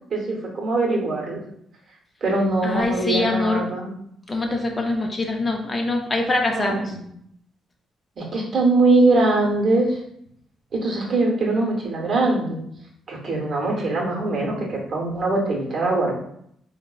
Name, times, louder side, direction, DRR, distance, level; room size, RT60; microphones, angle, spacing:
voice 1, 0.1-1.4 2.2-3.9 6.6-7.0 8.2-10.0 10.7-12.6 13.1-16.2, right 2 dB, 50° right, -1 dB, 0.8 m, -22 dB
voice 2, 2.6-3.7 4.3-6.9, left 2 dB, 30° left, 2 dB, 0.4 m, -24 dB
3.4 x 2.0 x 2.3 m, 0.71 s
cardioid pair, 90°, 0 cm